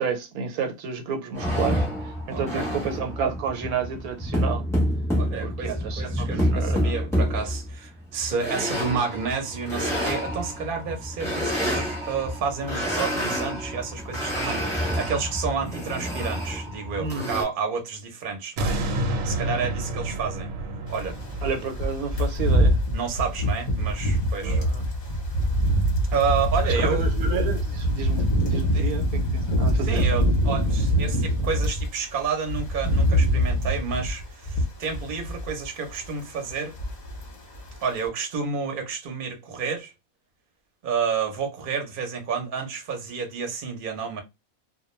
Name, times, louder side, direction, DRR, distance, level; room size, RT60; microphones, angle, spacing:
voice 1, 0.0-4.6 5.4-7.0 17.0-17.3 19.4-19.7 21.4-22.8 24.4-24.9 26.7-30.1, right 6 dB, 90° right, 1.1 m, -31 dB
sound 1, 1.3-17.4, equal, 5° left, 0.6 m, -28 dB
voice 2, 2.3-2.6 5.1-18.8 19.2-20.5 20.9-21.2 22.9-24.6 26.1-27.1 28.7-28.9 29.9-36.8 37.8-39.9 40.8-44.2, right 5 dB, 45° right, 0.7 m, -30 dB
sound 2, 18.6-23.7 24.1-24.2, right 1 dB, 70° right, 0.9 m, -30 dB
sound 3, 20.9-31.9 32.2-35.6 35.9-36.2 36.5-37.3 37.5-37.8, equal, 40° left, 0.7 m, -24 dB
2.2 x 2.2 x 3.0 m
omnidirectional pair, 1.5 m